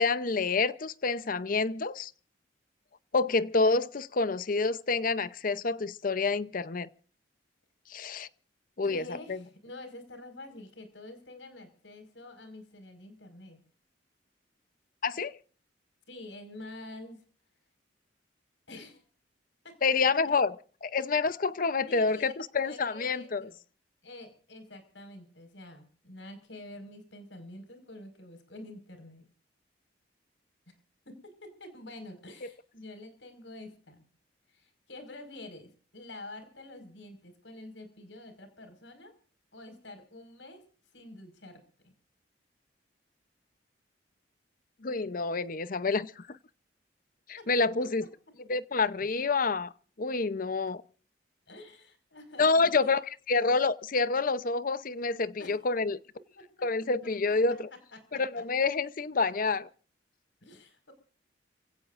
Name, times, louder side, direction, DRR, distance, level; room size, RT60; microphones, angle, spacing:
voice 1, 0.0-2.1 3.1-6.9 7.9-8.3 8.8-9.4 15.0-15.4 19.8-20.6 20.8-23.5 32.4-32.5 44.8-46.2 47.3-48.1 48.5-49.7 50.0-50.8 52.4-56.0 56.6-57.7 58.1-59.7, left 4 dB, 50° left, 0.7 m, -28 dB
voice 2, 8.8-13.6 16.1-17.2 18.7-19.0 19.6-20.1 21.9-22.3 22.6-23.6 24.0-29.3 30.7-30.8 31.0-34.1 34.5-39.1 39.5-40.6 40.9-41.9 47.4-47.5 51.5-53.0 55.4-55.5 56.3-56.5 57.9-58.2 60.4-60.9, left 2 dB, 75° left, 5.1 m, -47 dB
29.5 x 17.0 x 2.5 m
head